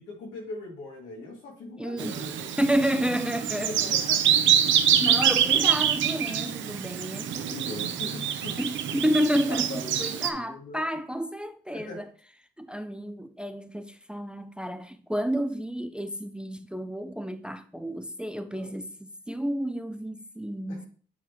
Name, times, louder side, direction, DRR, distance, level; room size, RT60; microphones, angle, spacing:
voice 1, 0.1-2.6 3.6-4.4 7.5-8.6 9.5-10.8 11.7-12.0 18.5-18.7 20.7-20.9, left 2 dB, 85° left, 2.4 m, -40 dB
voice 2, 1.8-2.2 2.6-3.7 5.0-7.6 8.6-12.0 12.6-20.9, equal, 5° right, 0.5 m, -30 dB
Bird vocalization bird call bird song, 2.0-10.3, right 9 dB, 70° right, 0.7 m, -25 dB
9.3 x 4.0 x 3.0 m
cardioid pair, 90°, 20 cm